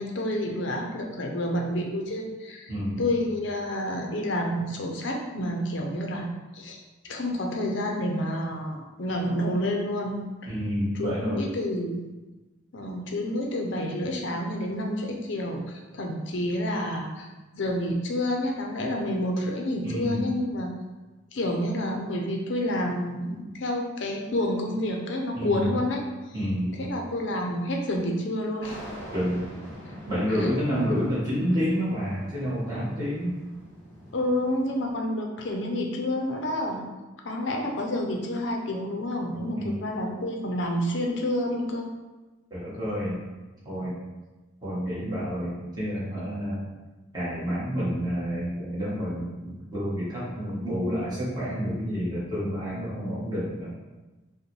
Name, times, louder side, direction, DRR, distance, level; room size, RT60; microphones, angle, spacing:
voice 1, 0.0-2.7 3.0-10.5 10.9-12.1 12.7-20.7 21.3-26.0 26.8-28.8 30.4-30.5 34.1-36.9 37.2-41.9 50.8-51.0, left 1 dB, 65° left, 1 dB, 0.6 m, -29 dB
voice 2, 2.7-3.0 10.5-11.5 19.8-20.3 25.3-25.8 26.3-26.8 29.1-29.4 30.1-33.4 39.5-39.8 42.5-43.2 43.6-43.9 44.6-46.6 47.1-53.7, equal, 20° right, -10 dB, 1.4 m, -29 dB
sound 1, 28.6-34.9, equal, 10° left, 1.3 m, -44 dB
5.1 x 2.2 x 3.1 m, 1.2 s
head